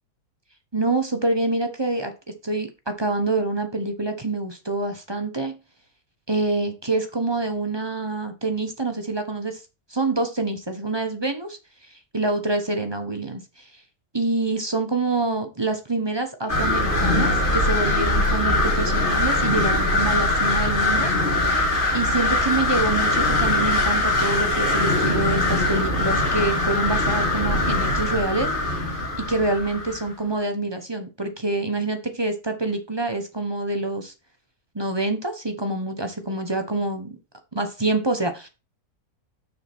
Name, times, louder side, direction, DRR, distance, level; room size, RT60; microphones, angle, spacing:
voice 1, 0.7-2.1 2.4-5.6 6.3-9.6 9.9-11.6 11.8-13.7 14.1-21.1 21.9-28.5 29.2-34.1 34.7-37.2 37.5-38.5, right 2 dB, 20° right, 7 dB, 1.0 m, -26 dB
sound 1, 16.5-30.1, left 2 dB, 35° left, 2.3 m, -22 dB
6.3 x 5.0 x 6.0 m, 0.29 s
omnidirectional pair, 1.6 m